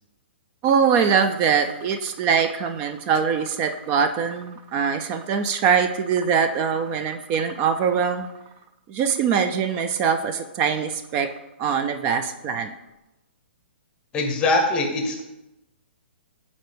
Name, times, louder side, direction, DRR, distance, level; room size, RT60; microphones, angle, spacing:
voice 1, 0.6-8.3 8.9-11.3 11.6-12.7, right 6 dB, 20° right, 9 dB, 0.3 m, -22 dB
voice 2, 14.1-15.2, left 2 dB, 15° left, 4 dB, 0.9 m, -22 dB
8.9 x 4.1 x 3.4 m, 0.94 s
hypercardioid pair, 160°, 6 cm